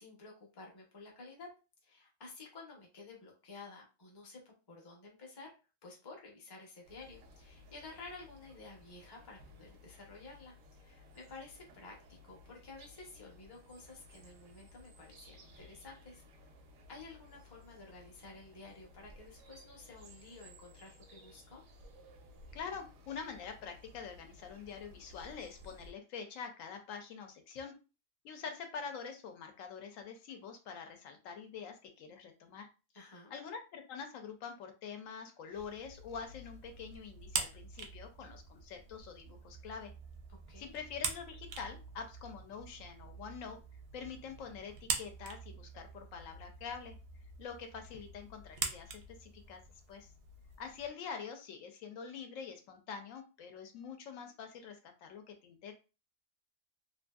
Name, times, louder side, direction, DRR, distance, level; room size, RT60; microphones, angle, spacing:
voice 1, 0.0-1.5 1.8-5.5 5.8-16.2 16.9-21.6 32.9-33.3 40.3-40.8, left 3 dB, 25° left, -1 dB, 0.6 m, -52 dB
sound 1, 6.8-25.9, left 1 dB, 80° right, 1.0 m, -58 dB
voice 2, 22.5-27.7 28.2-32.7 33.3-39.9 40.6-43.6 43.9-47.0 47.4-49.6 49.9-50.1 50.6-55.7, left 6 dB, 80° left, 6 dB, 1.0 m, -45 dB
sound 2, 35.5-50.9, right 5 dB, 60° right, 0.7 m, -44 dB
2.7 x 2.5 x 2.2 m, 0.31 s
omnidirectional pair, 1.4 m